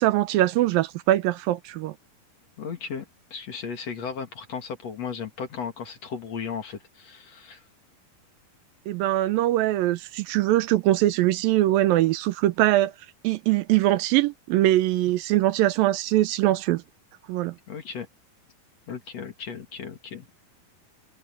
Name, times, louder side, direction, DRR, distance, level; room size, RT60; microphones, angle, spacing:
voice 1, 0.0-2.0 8.9-12.9 13.2-16.8 17.3-17.6, right 15 dB, 80° right, 2.5 m, -22 dB
voice 2, 2.6-3.0 3.3-7.6 17.7-18.1 18.9-20.4, left 6 dB, 50° left, 3.0 m, -35 dB
omnidirectional pair, 4.2 m